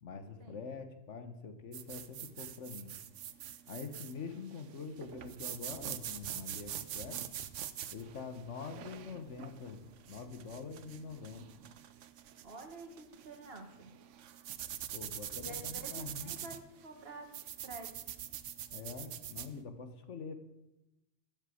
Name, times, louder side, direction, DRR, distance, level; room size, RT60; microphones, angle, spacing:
voice 1, 0.0-2.9 3.7-7.3 7.9-9.8 10.1-11.4 14.9-16.5 18.7-20.4, left 5 dB, 70° left, 8 dB, 1.5 m, -45 dB
sound 1, 1.7-19.5, right 10 dB, 75° right, 1.0 m, -45 dB
sound 2, 5.1-11.2, right 2 dB, 30° right, 3.6 m, -65 dB
voice 2, 12.4-13.9 15.4-17.3 17.6-18.0, right 2 dB, 50° right, 4 dB, 2.1 m, -49 dB
12.5 x 7.4 x 8.5 m, 0.97 s
omnidirectional pair, 1.3 m